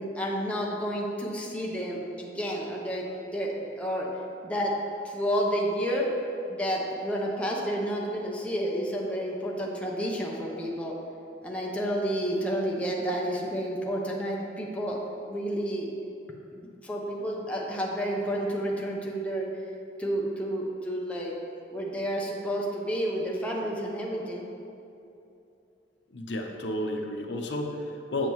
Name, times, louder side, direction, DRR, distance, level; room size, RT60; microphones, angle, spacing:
voice 1, 0.0-4.1 4.4-4.7 5.0-6.1 6.5-10.9 11.4-15.0 15.3-15.9 16.5-19.5 20.0-21.3 21.7-24.4, equal, 5° left, -3 dB, 0.8 m, -30 dB
voice 2, 26.1-28.3, left 1 dB, 75° left, 3 dB, 0.7 m, -32 dB
7.8 x 7.3 x 3.1 m, 2.7 s
head